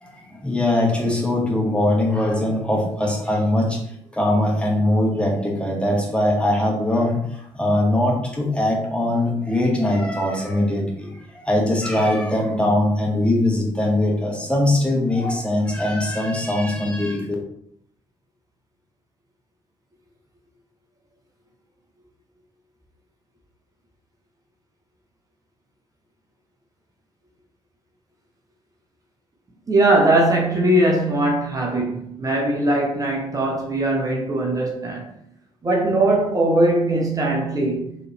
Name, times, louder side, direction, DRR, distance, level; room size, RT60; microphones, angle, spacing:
voice 1, 0.0-3.8 4.1-17.3, left 1 dB, 5° left, 1.0 m, -21 dB
voice 2, 29.7-35.1 35.6-38.0, right 1 dB, 25° right, 1.0 m, -20 dB
4.0 x 3.2 x 2.8 m
figure-of-eight pair, 40°, 14 cm